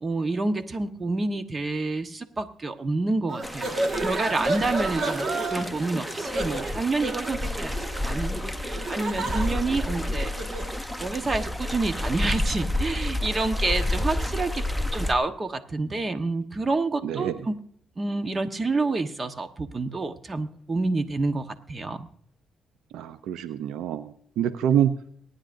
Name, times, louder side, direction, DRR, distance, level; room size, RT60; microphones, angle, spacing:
voice 1, 0.0-10.3 11.0-14.7 14.9-17.6 18.0-22.1, right 3 dB, 35° right, 9 dB, 1.2 m, -28 dB
sound 1, 3.3-10.8, right 2 dB, 55° right, 1.6 m, -31 dB
sound 2, 3.4-15.1, left 1 dB, ahead, 0.9 m, -30 dB
voice 2, 22.9-24.1 24.4-24.9, right 10 dB, 85° right, 12 dB, 0.5 m, -25 dB
23.5 x 9.8 x 2.6 m, 0.64 s
cardioid pair, 70°, 0 cm